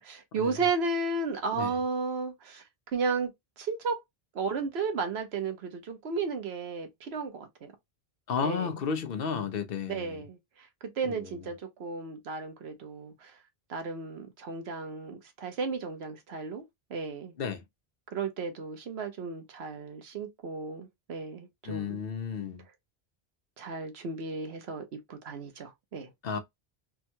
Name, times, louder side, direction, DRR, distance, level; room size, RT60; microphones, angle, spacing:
voice 1, 0.0-2.6 2.9-3.3 3.6-4.0 4.3-7.7 8.4-8.7 9.9-10.7 11.0-13.4 13.7-16.6 16.9-17.3 18.1-22.0 23.6-26.1, right 4 dB, 85° right, 1.1 m, -34 dB
voice 2, 8.3-10.2 11.0-11.3 17.4-17.6 21.6-22.6 26.2-26.4, left 6 dB, 65° left, 0.9 m, -33 dB
3.5 x 2.2 x 2.8 m
omnidirectional pair, 1.1 m